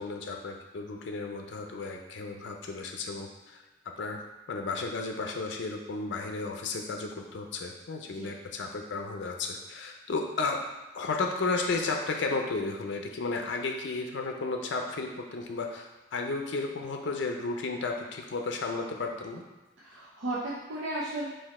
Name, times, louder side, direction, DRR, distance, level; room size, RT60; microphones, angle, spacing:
voice 1, 0.0-3.6 4.0-4.2 4.5-10.6 10.9-19.4, left 3 dB, 70° left, 3 dB, 0.5 m, -33 dB
voice 2, 19.8-21.3, right 1 dB, 80° right, -7 dB, 0.7 m, -35 dB
4.1 x 2.7 x 4.1 m, 1.1 s
head